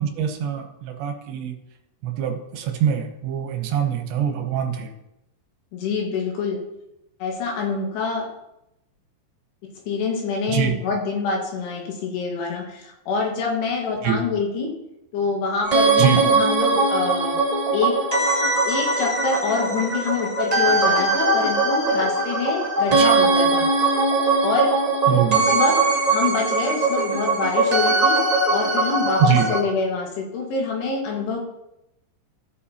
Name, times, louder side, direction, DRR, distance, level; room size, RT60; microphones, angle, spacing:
voice 1, 0.0-1.6 2.0-4.9 10.5-10.7 14.0-14.2 16.0-16.2 22.9-23.2 25.1-25.4 29.2-29.5, right 10 dB, 80° right, 4 dB, 3.1 m, -23 dB
voice 2, 5.7-6.6 7.2-8.3 9.6-14.7 15.1-17.4 17.7-18.0 18.6-23.7 24.4-24.8 25.4-25.8 26.1-28.2 28.5-31.4, left 4 dB, 70° left, 0 dB, 3.6 m, -25 dB
sound 1, 15.6-29.6, right 3 dB, 25° right, 0.8 m, -20 dB
15.0 x 7.5 x 2.8 m, 0.88 s
omnidirectional pair, 5.1 m